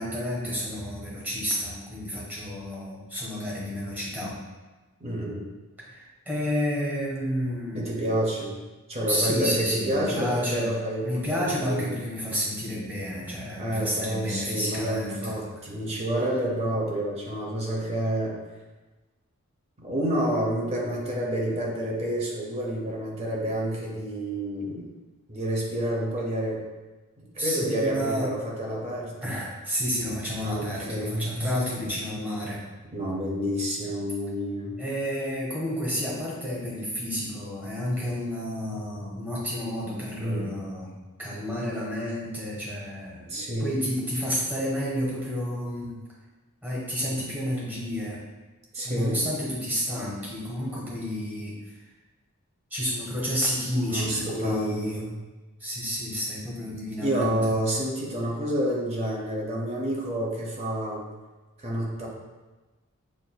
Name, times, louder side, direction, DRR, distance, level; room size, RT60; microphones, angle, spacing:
voice 1, 0.0-4.4 5.9-7.9 9.0-10.7 11.0-15.2 27.4-28.3 29.2-32.6 34.8-40.9 41.2-43.3 43.6-46.0 46.6-48.2 48.8-51.6 52.7-55.0 55.6-57.5, equal, 10° right, -7 dB, 1.1 m, -30 dB
voice 2, 5.0-5.4 7.7-8.6 8.9-12.0 13.6-18.3 19.8-24.9 25.3-26.6 27.2-29.3 30.4-31.5 32.9-34.7 40.2-40.6 43.3-43.8 48.7-49.2 53.9-55.1 57.0-61.0 61.6-62.1, right 1 dB, 30° right, -2 dB, 0.7 m, -29 dB
5.9 x 2.5 x 2.2 m, 1.2 s
head